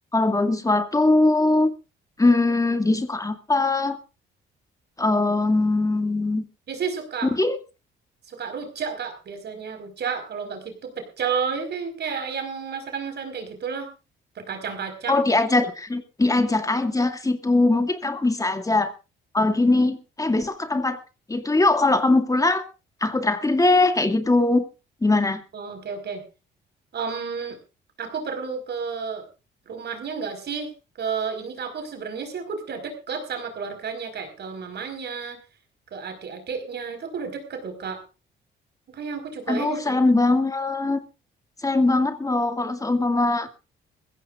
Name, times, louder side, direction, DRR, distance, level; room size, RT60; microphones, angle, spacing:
voice 1, 0.1-1.7 2.2-4.0 5.0-6.4 7.4-7.6 15.1-18.9 19.3-21.0 21.3-22.6 23.0-24.7 25.0-25.4 39.5-41.0 41.6-43.5, left 2 dB, 15° left, 8 dB, 2.2 m, -21 dB
voice 2, 6.7-7.3 8.3-13.9 14.3-15.3 25.5-26.2 26.9-27.6 28.0-29.3 29.7-30.7 31.0-35.4 35.9-38.0 38.9-40.1, right 6 dB, 60° right, 6 dB, 4.9 m, -31 dB
21.5 x 16.0 x 2.5 m, 0.30 s
cardioid pair, 90°, 20 cm